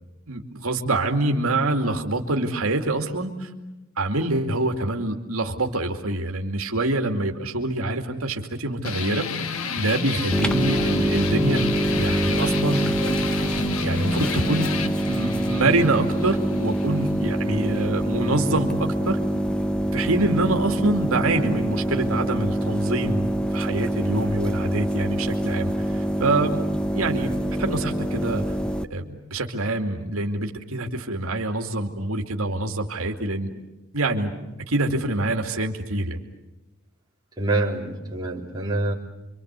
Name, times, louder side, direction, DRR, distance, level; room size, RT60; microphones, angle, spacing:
voice 1, 0.3-3.5 4.0-9.3 9.8-12.9 13.4-14.7 15.1-19.2 19.9-26.6 26.9-28.4 28.9-33.5 33.9-34.3 34.7-36.2, right 2 dB, 80° right, 3 dB, 2.5 m, -25 dB
sound 1, 8.8-17.9, left 4 dB, 75° left, 1.3 m, -30 dB
sound 2, 10.3-28.9, right 1 dB, 5° left, 0.9 m, -25 dB
voice 2, 37.4-38.9, right 2 dB, 20° right, -3 dB, 3.7 m, -26 dB
27.5 x 25.0 x 8.2 m, 1.0 s
head